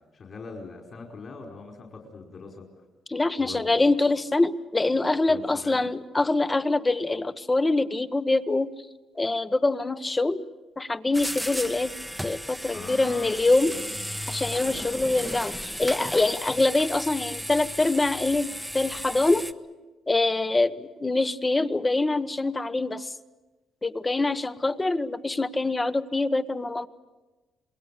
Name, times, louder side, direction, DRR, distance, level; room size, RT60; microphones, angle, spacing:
voice 1, 0.0-2.6 3.4-3.9 5.3-5.9 12.7-14.0, left 4 dB, 50° left, 2 dB, 4.7 m, -42 dB
voice 2, 3.1-8.7 9.2-10.4 10.8-11.9 12.2-13.7 14.3-19.5 20.1-23.1 23.8-26.9, left 2 dB, 20° left, 12 dB, 1.1 m, -24 dB
sound 1, 11.1-19.5, equal, ahead, 1.1 m, -35 dB
27.5 x 21.0 x 8.4 m, 1.2 s
cardioid pair, 90°, 0 cm